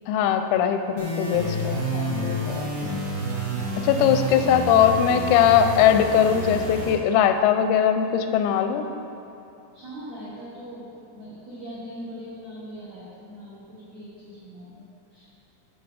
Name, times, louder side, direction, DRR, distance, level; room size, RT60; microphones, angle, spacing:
voice 1, 0.1-2.7 3.8-8.9, left 9 dB, 90° left, 7 dB, 3.3 m, -20 dB
sound 1, 1.0-6.9, right 1 dB, 65° right, 2.0 m, -29 dB
voice 2, 2.7-3.0 4.3-4.8 9.7-15.3, equal, 85° right, -9 dB, 1.5 m, -41 dB
14.5 x 6.0 x 3.4 m, 2.9 s
omnidirectional pair, 5.9 m